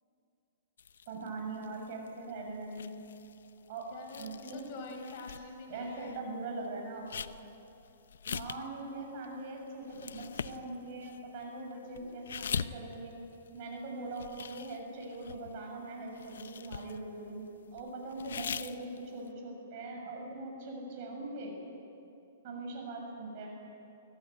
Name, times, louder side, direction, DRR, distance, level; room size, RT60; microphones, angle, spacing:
sound 1, 0.8-6.2 6.5-13.8 14.1-15.8 16.1-17.3 17.8-19.3, left 7 dB, 85° left, 0.7 m, -43 dB
voice 1, 1.1-3.0 3.7-3.9 4.2-4.7 5.7-7.1 8.3-13.1 13.5-17.4 17.7-21.6 22.4-23.5, right 2 dB, 45° right, 1 dB, 6.9 m, -41 dB
voice 2, 3.9-6.2 11.9-12.2, left 3 dB, 45° left, 1 dB, 5.4 m, -46 dB
24.0 x 16.0 x 9.5 m, 2.9 s
hypercardioid pair, 150°, 0 cm